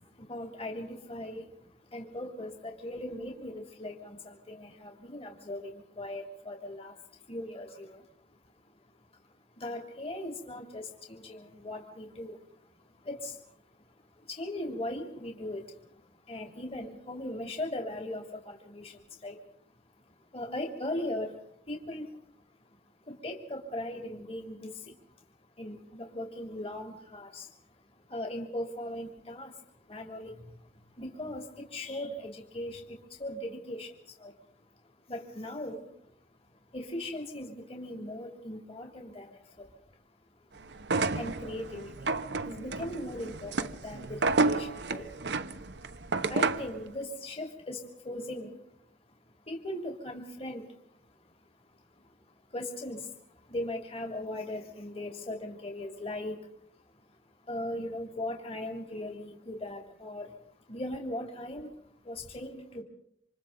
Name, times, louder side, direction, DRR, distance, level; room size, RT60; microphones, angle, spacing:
voice 1, 0.0-8.8 9.1-19.4 19.8-40.0 40.3-48.6 48.9-62.8, left 1 dB, 35° left, 2 dB, 2.9 m, -40 dB
sound 1, 40.8-46.8, right 3 dB, 75° right, 1.0 m, -30 dB
27.5 x 26.5 x 3.9 m, 0.68 s
head